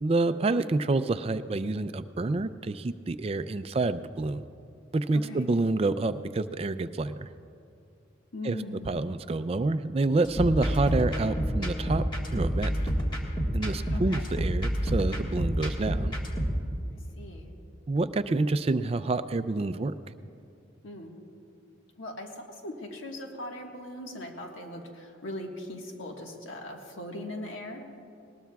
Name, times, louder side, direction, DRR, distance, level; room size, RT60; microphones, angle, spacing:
voice 1, 0.0-4.4 4.9-7.3 8.4-8.6 8.9-12.0 12.3-12.7 13.5-16.1 17.9-19.9, right 2 dB, 30° right, 12 dB, 0.3 m, -28 dB
voice 2, 5.1-5.5 8.3-8.9 13.9-14.3 17.2-17.5 20.8-21.2 22.0-27.8, left 1 dB, 80° left, 1 dB, 1.5 m, -40 dB
sound 1, 10.2-16.6, equal, 25° left, 1.5 m, -29 dB
sound 2, 10.4-14.7, left 1 dB, ahead, 3.1 m, -42 dB
20.0 x 19.5 x 2.3 m, 2.6 s
head